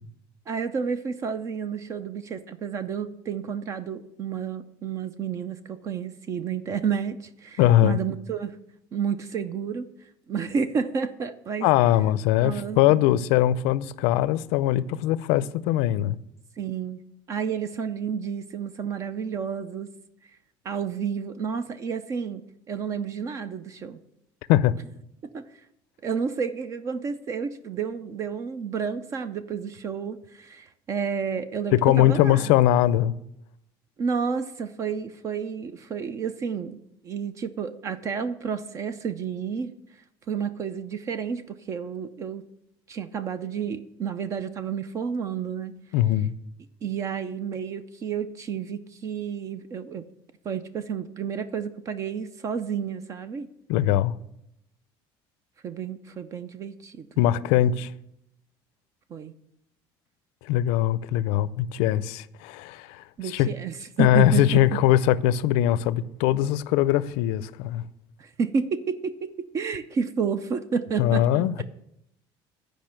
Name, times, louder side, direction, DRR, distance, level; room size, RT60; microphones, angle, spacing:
voice 1, 0.5-8.5 8.9-9.9 10.3-11.7 12.4-13.0 16.6-17.0 17.3-19.9 20.6-24.0 25.3-25.4 26.0-32.5 34.0-39.7 40.3-42.5 42.9-45.8 46.8-50.1 50.4-53.5 55.6-57.1 59.1-59.3 63.2-64.7 68.2-71.6, right 6 dB, 30° right, 0.5 m, -30 dB
voice 2, 7.6-8.0 11.6-16.2 24.5-24.8 31.7-33.2 45.9-46.3 53.7-54.2 57.2-57.9 60.4-63.5 64.0-67.8 71.0-71.6, left 12 dB, 85° left, 0.4 m, -21 dB
10.5 x 5.1 x 7.6 m
cardioid pair, 165°, 10 cm